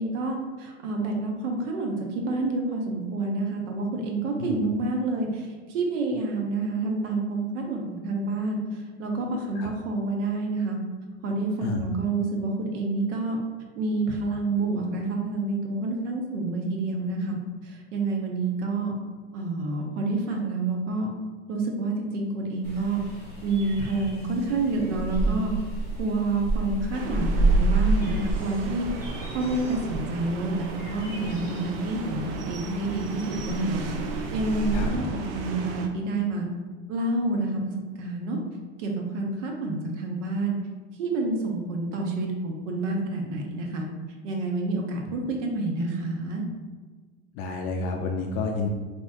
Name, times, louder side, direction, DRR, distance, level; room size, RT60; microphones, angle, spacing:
voice 1, 0.0-10.8 11.2-13.4 13.8-18.9 19.3-21.1 21.5-23.0 23.4-25.5 26.0-28.9 29.3-36.5 36.9-38.4 38.8-40.6 41.0-43.9 44.2-46.4, right 2 dB, 70° right, 1 dB, 0.8 m, -28 dB
sound 1, 22.6-34.9, right 2 dB, 5° left, 1.5 m, -30 dB
sound 2, 26.9-35.9, right 3 dB, 50° right, 0.5 m, -36 dB
voice 2, 47.3-48.7, left 4 dB, 45° left, 2 dB, 0.4 m, -30 dB
3.4 x 2.9 x 2.6 m, 1.4 s
hypercardioid pair, 105°, 38 cm